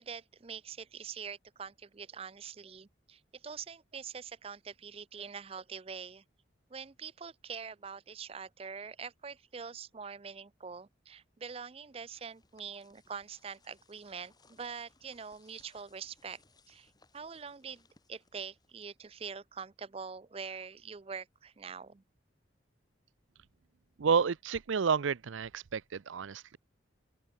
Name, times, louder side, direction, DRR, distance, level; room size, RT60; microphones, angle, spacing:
voice 1, 0.0-6.2 6.7-16.4 16.7-22.0, right 6 dB, 30° right, 0.4 m, -44 dB
sound 1, 11.6-19.4, left 3 dB, 20° left, 4.0 m, -68 dB
voice 2, 24.0-26.6, right 6 dB, 80° right, 0.5 m, -30 dB
open air
head